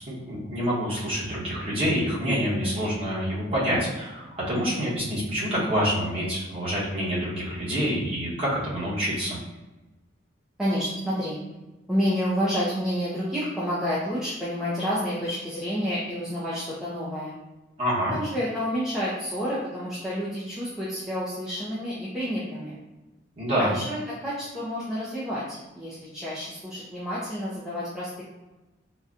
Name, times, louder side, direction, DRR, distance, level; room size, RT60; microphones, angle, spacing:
voice 1, 0.0-9.4 17.8-18.1 23.4-23.7, equal, 30° right, -9 dB, 1.1 m, -27 dB
voice 2, 10.6-11.3 11.9-17.3 18.1-22.8 23.6-28.2, equal, 5° right, -10 dB, 0.5 m, -29 dB
4.1 x 2.2 x 2.5 m, 1.1 s
head